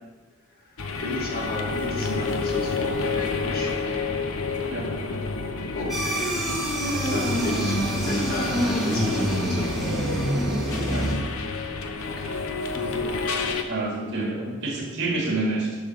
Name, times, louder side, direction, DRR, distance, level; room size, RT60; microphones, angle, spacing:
voice 1, 0.6-3.7 5.7-7.8 8.1-9.8 12.1-12.4, left 2 dB, 45° left, 0 dB, 1.4 m, -33 dB
sound 1, 0.8-13.6, left 4 dB, 70° left, 0.8 m, -30 dB
sound 2, 5.9-11.1, right 1 dB, ahead, 1.5 m, -26 dB
voice 2, 12.7-13.1 13.7-15.8, right 2 dB, 55° right, -1 dB, 1.8 m, -28 dB
11.0 x 3.9 x 6.2 m, 1.4 s
head